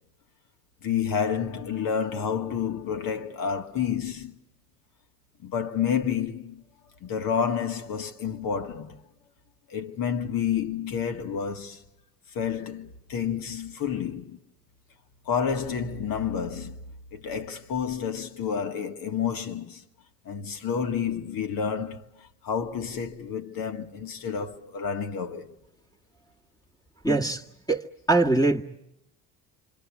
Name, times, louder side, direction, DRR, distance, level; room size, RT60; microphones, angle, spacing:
voice 1, 0.8-4.4 5.4-6.6 7.0-9.0 9.7-11.8 12.3-14.4 15.3-16.8 17.1-19.8 20.3-25.5, left 7 dB, 60° left, 1.9 m, -29 dB
voice 2, 27.0-27.4 27.7-28.6, right 2 dB, 10° left, 1.7 m, -22 dB
27.0 x 26.0 x 8.4 m
supercardioid pair, 75°, 40 cm